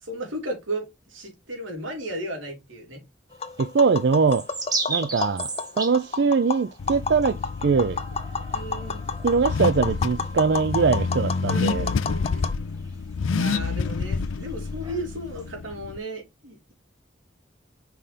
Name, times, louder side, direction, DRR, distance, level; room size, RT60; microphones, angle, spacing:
voice 1, 0.0-3.0 8.5-9.0 9.8-9.9 11.5-12.5 13.4-16.7, right 1 dB, 90° right, 3.4 m, -35 dB
Tap, 3.3-12.5, left 4 dB, 30° left, 0.5 m, -32 dB
sound 1, 3.3-15.5, right 4 dB, 20° right, 1.3 m, -37 dB
voice 2, 3.6-4.4 4.9-5.5 5.8-8.0 9.2-11.9, right 5 dB, 60° right, 0.4 m, -22 dB
Car / Accelerating revving vroom, 6.8-16.0, left 4 dB, 90° left, 0.5 m, -29 dB
5.7 x 4.9 x 4.1 m
head